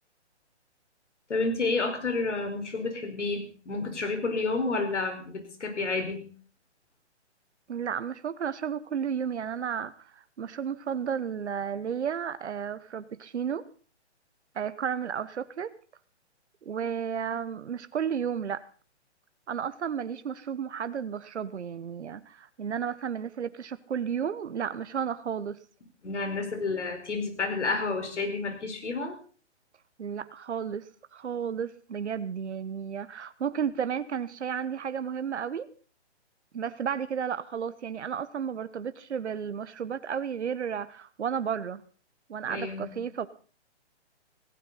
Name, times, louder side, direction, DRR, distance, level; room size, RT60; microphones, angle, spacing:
voice 1, 1.3-6.3 26.0-29.2 42.4-42.9, left 3 dB, 80° left, 6 dB, 4.7 m, -30 dB
voice 2, 7.7-13.6 14.5-15.7 16.6-18.6 19.5-25.6 30.0-35.7 36.5-41.8 42.3-43.3, right 7 dB, 75° right, 13 dB, 1.1 m, -33 dB
17.5 x 16.5 x 4.1 m, 0.39 s
hypercardioid pair, 150°, 35 cm